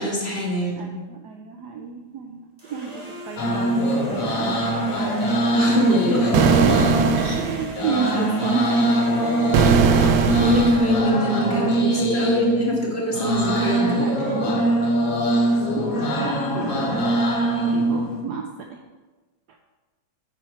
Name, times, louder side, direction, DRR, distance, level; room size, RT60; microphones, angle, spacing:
voice 1, 0.0-0.9 5.5-6.5 7.2-7.4 10.3-14.0, equal, 30° left, -4 dB, 1.9 m, -24 dB
voice 2, 0.8-4.7 6.4-10.0 11.6-12.1 12.4-12.5 14.0-14.9 15.4-16.9 17.6-18.8 19.5-19.6, right 5 dB, 70° right, 3 dB, 1.0 m, -31 dB
sound 1, 2.6-10.3, left 1 dB, 20° right, 1.5 m, -38 dB
sound 2, 3.4-18.2, right 1 dB, 50° left, 1.4 m, -22 dB
sound 3, 6.3-7.8 9.5-11.0, right 6 dB, 85° right, 1.4 m, -20 dB
9.1 x 4.9 x 4.4 m, 1.2 s
omnidirectional pair, 2.1 m